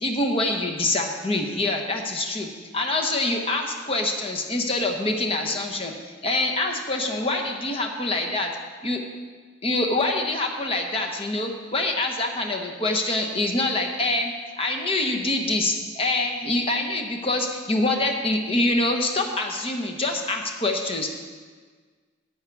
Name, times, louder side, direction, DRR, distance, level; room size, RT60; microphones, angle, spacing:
voice 1, 0.0-2.5 2.7-8.5 8.8-9.0 9.6-14.3 14.6-21.1, left 2 dB, 30° left, 2 dB, 1.0 m, -25 dB
11.0 x 8.1 x 4.8 m, 1.5 s
head